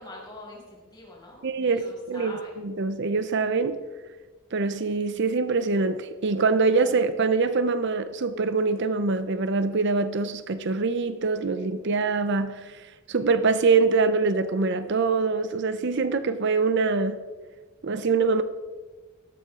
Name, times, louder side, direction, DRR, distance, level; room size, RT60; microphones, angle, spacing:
voice 1, 0.0-2.6, left 2 dB, 20° left, 5.7 m, -44 dB
voice 2, 1.4-3.8 4.5-12.8 13.1-17.2 17.8-18.4, right 4 dB, 55° right, 0.6 m, -24 dB
18.0 x 13.5 x 3.7 m
head